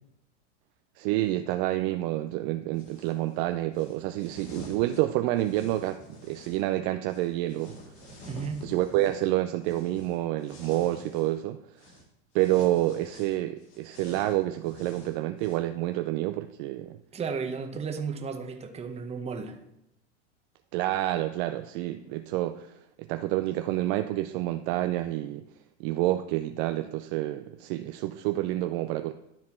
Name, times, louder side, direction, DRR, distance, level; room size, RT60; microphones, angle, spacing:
voice 1, 1.0-7.7 8.1-8.2 8.6-11.6 12.3-17.0 20.7-22.7 23.0-25.4 25.8-29.1, right 15 dB, 50° right, 8 dB, 0.4 m, -28 dB
sound 1, 2.8-3.2 3.7-6.6 7.1-11.4 11.8-12.0 12.4-15.6, left 1 dB, 50° left, 2.3 m, -49 dB
voice 2, 8.3-8.6 17.1-19.6, right 5 dB, 15° right, 5 dB, 0.9 m, -34 dB
12.0 x 4.1 x 4.3 m, 0.84 s
supercardioid pair, 130°, 35 cm